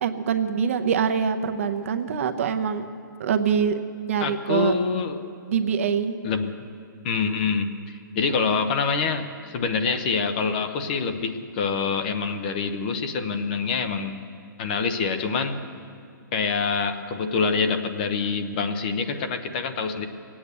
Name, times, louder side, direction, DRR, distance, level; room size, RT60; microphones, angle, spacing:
voice 1, 0.0-2.9 3.2-3.8 4.1-4.7 5.5-6.2, right 7 dB, 40° right, 8 dB, 0.7 m, -24 dB
voice 2, 4.2-5.2 6.2-6.5 7.0-14.2 14.6-15.6 16.3-20.1, left 5 dB, 25° left, 8 dB, 0.7 m, -26 dB
19.0 x 8.8 x 8.2 m, 2.3 s
hypercardioid pair, 170°, 11 cm